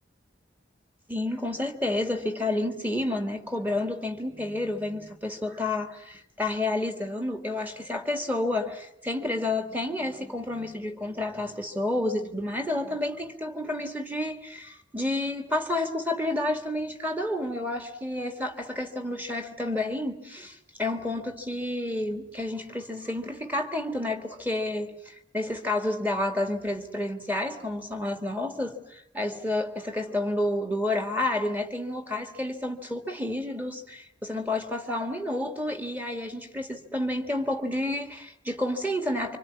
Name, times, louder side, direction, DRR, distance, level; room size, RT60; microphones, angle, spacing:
voice 1, 1.1-39.4, left 1 dB, 10° right, 2.0 m, -30 dB
26.0 x 25.5 x 8.6 m
head